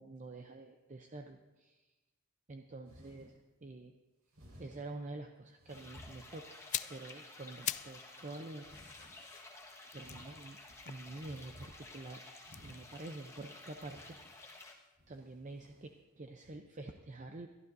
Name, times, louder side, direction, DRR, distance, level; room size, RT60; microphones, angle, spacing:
voice 1, 0.0-1.9 2.5-3.3 3.6-3.9 4.6-6.6 6.9-9.3 9.6-10.6 10.8-12.2 12.6-14.5 15.1-17.5, right 2 dB, 35° right, 4 dB, 0.6 m, -48 dB
sound 1, 2.8-3.3 4.3-4.8 5.6-6.8 7.3-7.8 8.6-9.1 9.9-12.0 12.4-13.0 13.7-14.4 15.0-15.9 16.4-16.5, equal, 85° right, 5.6 m, -58 dB
sound 2, 5.7-14.7, left 2 dB, 15° left, 1.4 m, -53 dB
sound 3, 6.5-8.0 8.3-11.6 12.4-14.5 14.7-14.9, left 12 dB, 35° left, 0.3 m, -44 dB
22.0 x 12.5 x 2.7 m, 1.1 s
head